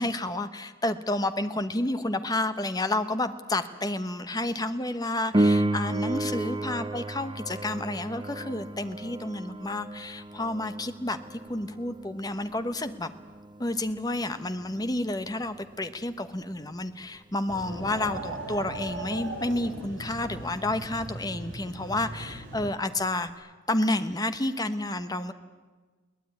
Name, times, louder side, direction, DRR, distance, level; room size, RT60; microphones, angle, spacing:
voice 1, 0.0-13.1 13.6-25.3, left 2 dB, 20° left, 10 dB, 1.1 m, -30 dB
Piano, 5.3-15.7 23.3-23.4, right 1 dB, 25° right, 1.0 m, -32 dB
sound 1, 17.5-22.6, right 1 dB, 85° right, 7.3 m, -38 dB
22.5 x 18.0 x 9.4 m, 1.4 s
head